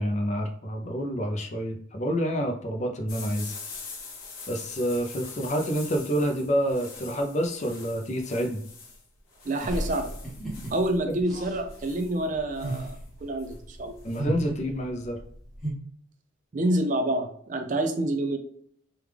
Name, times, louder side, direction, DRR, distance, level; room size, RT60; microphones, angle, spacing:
voice 1, 0.0-3.6 4.5-8.6 11.1-11.2 14.0-15.2, equal, 35° left, 4 dB, 0.5 m, -28 dB
sound 1, 3.1-14.2, left 4 dB, 90° left, 1.0 m, -44 dB
voice 2, 9.5-10.1 10.7-13.0 13.2-14.0 16.5-18.4, right 1 dB, 40° right, 6 dB, 0.4 m, -27 dB
sound 2, 9.6-15.7, right 1 dB, ahead, 0.9 m, -35 dB
3.4 x 2.3 x 3.3 m, 0.64 s
head